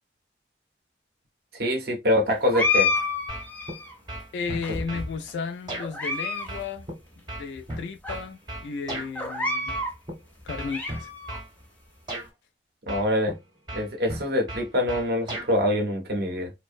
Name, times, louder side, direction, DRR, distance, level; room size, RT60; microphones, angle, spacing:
voice 1, 1.5-2.9 12.9-13.3 13.7-16.5, left 1 dB, 60° right, 0.6 m, -25 dB
sound 1, 2.5-3.9 4.6-5.3 5.8-6.5 6.8-6.9 7.6-7.7 8.0-8.2 9.1-10.0 10.4-11.4, left 3 dB, 10° left, 0.4 m, -28 dB
sound 2, 3.3-3.8 4.1-5.1 5.7-5.9 6.5-9.1 9.7-10.1 10.5-11.5 12.1-12.3 12.9-13.4 13.7-15.5, right 1 dB, 25° right, 0.7 m, -35 dB
voice 2, 4.3-6.9 7.4-9.8 10.4-11.1, left 5 dB, 85° left, 0.3 m, -34 dB
2.5 x 2.1 x 2.4 m
head